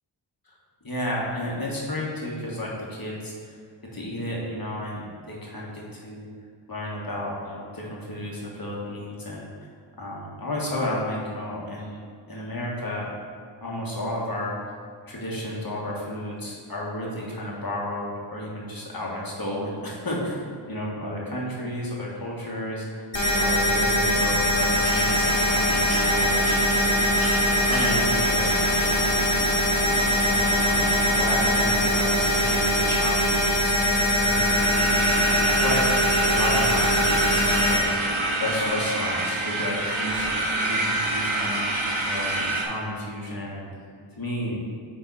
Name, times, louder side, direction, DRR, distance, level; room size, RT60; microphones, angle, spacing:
voice 1, 0.8-3.5 3.9-6.3 6.7-9.7 10.0-12.0 12.3-13.1 13.6-14.5 15.1-27.1 27.4-28.6 29.0-29.4 30.2-34.0 34.2-37.9 38.4-43.7 44.2-44.6, left 1 dB, 45° left, -4 dB, 1.7 m, -32 dB
sound 1, 23.1-37.8, left 1 dB, 65° left, 1.8 m, -22 dB
sound 2, 24.6-42.7, right 2 dB, 70° right, 1.3 m, -29 dB
8.9 x 3.9 x 4.2 m, 2.1 s
wide cardioid pair, 65°, 49 cm